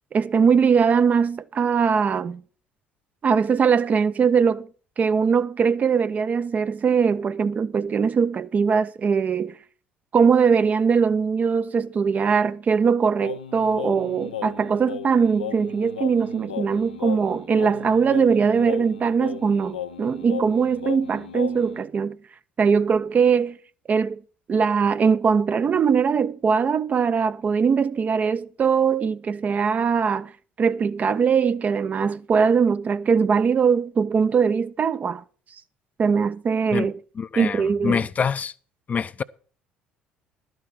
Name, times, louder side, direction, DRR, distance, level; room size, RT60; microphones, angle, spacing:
voice 1, 0.1-2.4 3.2-4.7 5.0-9.6 10.1-22.2 22.6-23.6 23.9-24.2 24.5-30.3 30.6-35.2 36.0-37.0 37.4-38.0, right 6 dB, 35° right, 0.6 m, -21 dB
Singing, 13.2-21.8, left 10 dB, 85° left, 0.5 m, -35 dB
voice 2, 37.2-38.5 38.9-39.2, left 6 dB, 35° left, 0.6 m, -25 dB
12.0 x 6.3 x 7.5 m
figure-of-eight pair, 55°, 4 cm